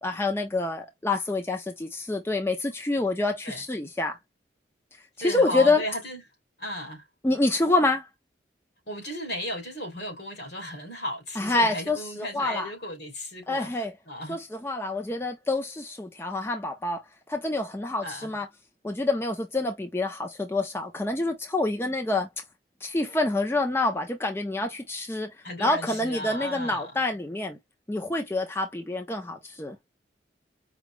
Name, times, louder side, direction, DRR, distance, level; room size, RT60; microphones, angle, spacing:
voice 1, 0.0-4.2 5.2-5.8 7.2-8.1 11.4-12.7 13.5-13.9 14.3-17.0 17.3-18.5 18.8-22.3 22.8-25.3 25.6-27.6 27.9-29.8, left 2 dB, 15° left, 0.5 m, -27 dB
voice 2, 5.2-6.2 6.6-7.0 8.9-13.7 14.1-14.4 18.0-18.3 25.4-26.9, equal, 70° left, 2.7 m, -35 dB
5.0 x 2.0 x 3.2 m
head